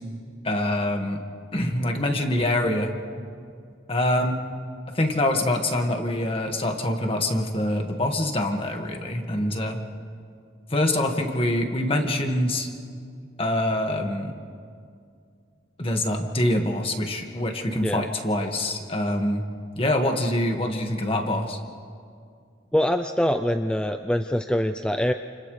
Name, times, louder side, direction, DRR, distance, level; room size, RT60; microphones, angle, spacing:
voice 1, 0.4-1.2 1.5-2.9 3.9-4.4 4.9-9.8 10.7-12.7 13.4-14.3 15.8-19.4 19.7-21.6, left 1 dB, 30° left, 3 dB, 1.8 m, -25 dB
voice 2, 22.7-25.1, equal, 5° left, 7 dB, 0.4 m, -24 dB
30.0 x 29.0 x 3.3 m, 2.3 s
head